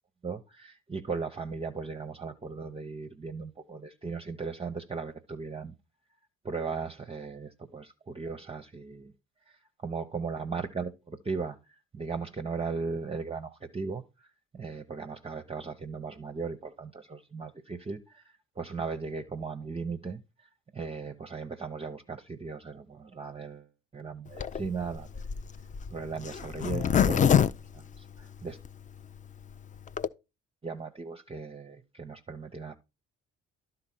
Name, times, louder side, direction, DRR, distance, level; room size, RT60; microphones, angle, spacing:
voice 1, 0.2-5.7 6.4-9.1 9.5-9.6 9.8-11.6 11.9-14.0 14.5-20.2 20.7-23.7 23.9-25.2 25.9-27.3 27.7-28.6 30.6-32.8, right 4 dB, 15° right, 0.6 m, -37 dB
Zipper (clothing), 24.3-28.7 29.2-29.3 29.4-29.5 29.7-30.1, left 8 dB, 25° left, 0.4 m, -26 dB
11.5 x 3.9 x 4.2 m
hypercardioid pair, 55°, 33 cm